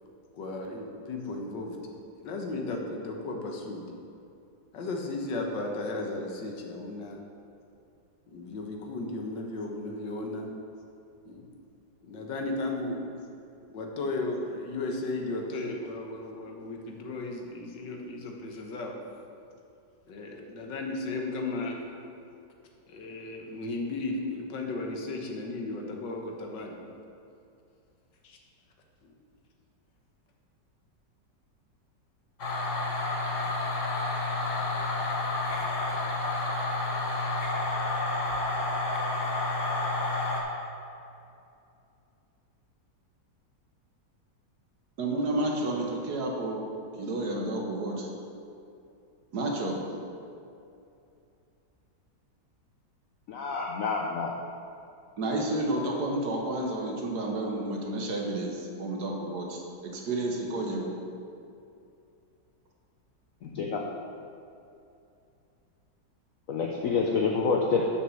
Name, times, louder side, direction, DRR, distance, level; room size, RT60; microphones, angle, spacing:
voice 1, 0.3-1.8 2.2-3.8 4.7-7.2 8.3-10.5 11.2-11.5 12.0-13.0 13.7-19.0 20.1-21.8 22.9-26.8 28.2-28.4 29.0-29.1, left 2 dB, 85° left, 2 dB, 1.8 m, -35 dB
sound 1, 32.4-40.4, left 2 dB, 45° left, 1.5 m, -30 dB
voice 2, 45.0-46.6 47.0-48.1 49.3-49.8 55.2-60.9, right 1 dB, 65° right, 0 dB, 1.6 m, -31 dB
voice 3, 53.3-54.3 63.4-63.8 66.5-67.9, left 5 dB, 65° left, 0 dB, 0.9 m, -27 dB
6.7 x 6.2 x 7.0 m, 2.6 s
omnidirectional pair, 1.9 m